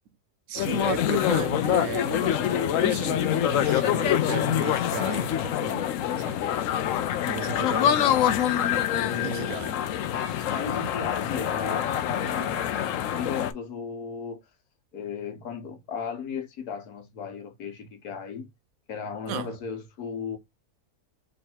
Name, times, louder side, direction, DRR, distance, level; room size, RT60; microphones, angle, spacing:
voice 1, 0.5-6.4 7.3-8.2 9.2-9.7 12.2-12.6 19.3-19.5, right 10 dB, 75° right, 1.0 m, -35 dB
sound 1, 0.6-13.5, left 10 dB, 70° left, 0.9 m, -25 dB
voice 2, 8.9-9.6 10.5-12.7 13.1-14.5 14.9-18.5 18.9-20.4, left 6 dB, 85° left, 1.5 m, -35 dB
3.4 x 3.2 x 4.3 m
omnidirectional pair, 1.6 m